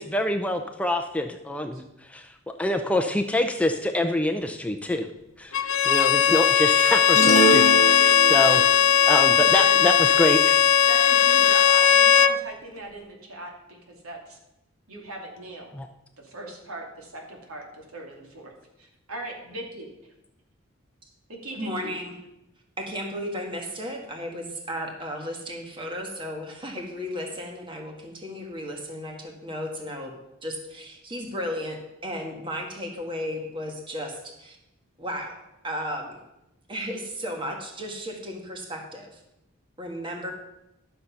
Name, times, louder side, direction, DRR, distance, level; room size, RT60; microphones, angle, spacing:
voice 1, 0.0-1.8 2.1-2.3 2.6-5.1 5.4-8.6 9.1-10.7 15.7-15.9, left 1 dB, 5° left, 4 dB, 0.5 m, -26 dB
Bowed string instrument, 5.5-12.4, left 9 dB, 70° left, 0.6 m, -18 dB
sound 1, 7.2-8.7, equal, 35° left, 1.1 m, -23 dB
voice 2, 9.3-9.8 10.9-14.4 14.9-15.7 16.2-18.2 19.1-19.9 21.4-21.9, right 1 dB, 90° right, 1 dB, 2.6 m, -39 dB
voice 3, 21.5-22.2 22.8-30.1 30.4-34.6 35.0-35.3 35.6-36.2 36.7-39.2 39.8-40.3, equal, 25° right, 2 dB, 1.6 m, -34 dB
12.5 x 6.6 x 5.7 m, 0.89 s
head